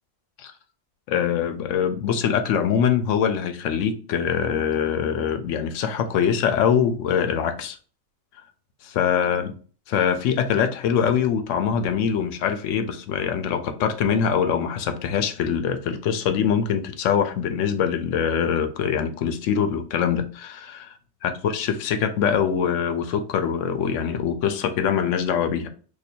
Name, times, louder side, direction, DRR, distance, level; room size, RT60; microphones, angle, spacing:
voice 1, 1.1-7.8 8.8-9.5 9.9-20.9 21.2-25.7, left 7 dB, 70° left, 0.8 m, -23 dB
2.7 x 2.6 x 4.2 m
omnidirectional pair, 1.5 m